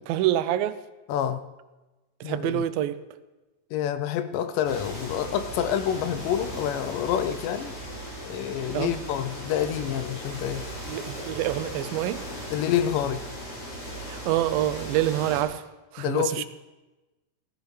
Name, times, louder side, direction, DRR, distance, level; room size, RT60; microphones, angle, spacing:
voice 1, 0.1-0.8 2.2-3.0 8.7-8.9 10.9-12.2 14.1-15.6 15.9-16.5, right 12 dB, 85° right, 13 dB, 2.3 m, -26 dB
voice 2, 1.1-1.5 2.2-2.6 3.7-7.8 8.2-10.7 12.5-13.2 16.0-16.5, left 10 dB, 80° left, 11 dB, 2.1 m, -28 dB
sound 1, 4.6-15.4, equal, 50° left, 4.8 m, -37 dB
16.5 x 15.0 x 3.2 m, 1.1 s
omnidirectional pair, 4.2 m